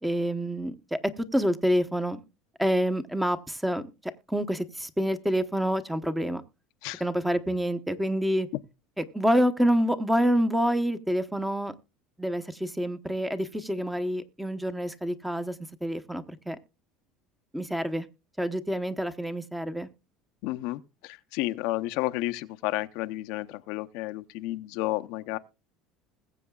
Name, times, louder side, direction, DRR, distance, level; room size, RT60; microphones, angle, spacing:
voice 1, 0.0-2.2 2.6-3.9 4.3-6.4 7.0-8.5 9.0-11.7 12.2-15.5 15.8-16.6 17.5-18.1 18.4-19.9, equal, 5° right, 0.9 m, -27 dB
voice 2, 20.4-25.4, left 17 dB, 70° left, 0.7 m, -31 dB
21.0 x 7.7 x 2.3 m
cardioid pair, 135°, 0 cm